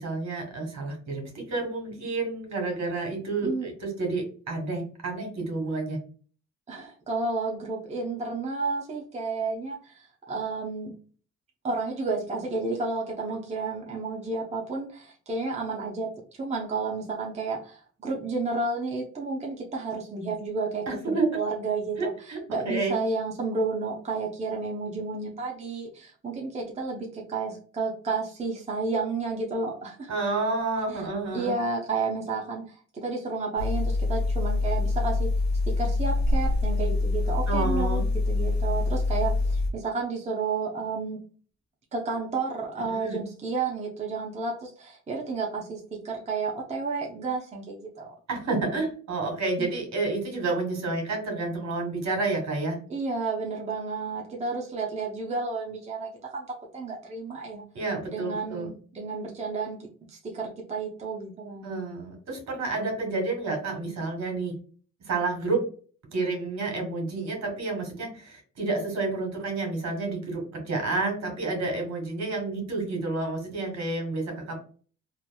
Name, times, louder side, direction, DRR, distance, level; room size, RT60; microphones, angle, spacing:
voice 1, 0.0-6.0 20.9-21.3 22.0-22.4 22.6-23.0 30.1-31.5 37.5-38.1 42.9-43.2 48.3-52.8 57.7-58.7 61.6-64.5 65.0-65.6 66.1-74.6, right 3 dB, 65° right, 2 dB, 1.4 m, -30 dB
voice 2, 6.7-10.9 11.6-16.1 16.4-30.1 31.3-35.3 35.7-38.0 38.3-41.2 41.9-48.1 49.6-49.7 52.9-56.5 56.7-57.6 58.1-59.8 60.1-61.8, right 3 dB, 20° right, -1 dB, 0.7 m, -31 dB
sound 1, 33.6-39.7, left 2 dB, 70° left, 0.9 m, -25 dB
2.9 x 2.5 x 2.2 m, 0.41 s
cardioid pair, 90°, 30 cm